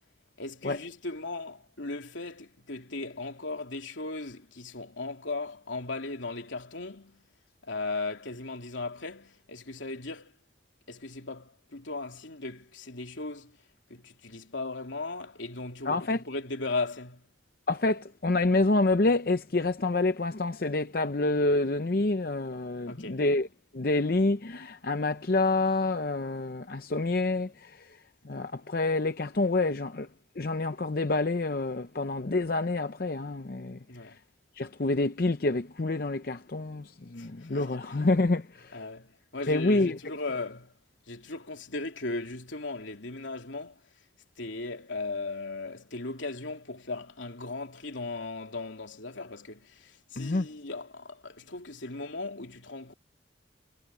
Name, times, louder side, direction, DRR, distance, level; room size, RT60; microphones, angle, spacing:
voice 1, 0.4-7.3 7.6-10.3 10.9-13.6 13.9-17.2 22.9-23.2 33.9-34.2 37.1-37.8 38.7-40.7 41.1-43.8 44.4-52.9, left 3 dB, 85° left, 3.1 m, -37 dB
voice 2, 15.8-16.2 17.7-23.5 23.7-28.0 28.2-30.1 30.4-33.8 34.6-38.8 39.5-40.0 50.2-50.5, left 2 dB, 50° left, 0.7 m, -27 dB
head